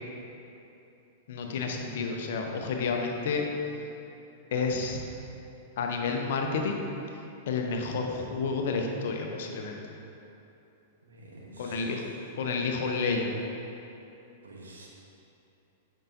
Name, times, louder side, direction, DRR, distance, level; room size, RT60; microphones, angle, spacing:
voice 1, 1.3-3.4 4.5-5.0 5.8-6.8 7.5-9.9 11.6-12.0 12.3-13.3, left 4 dB, 60° left, 2 dB, 0.7 m, -30 dB
voice 2, 11.0-12.3 14.4-14.9, right 2 dB, 80° right, -2 dB, 1.2 m, -49 dB
8.6 x 5.4 x 2.7 m, 2.8 s
figure-of-eight pair, 100°, 0 cm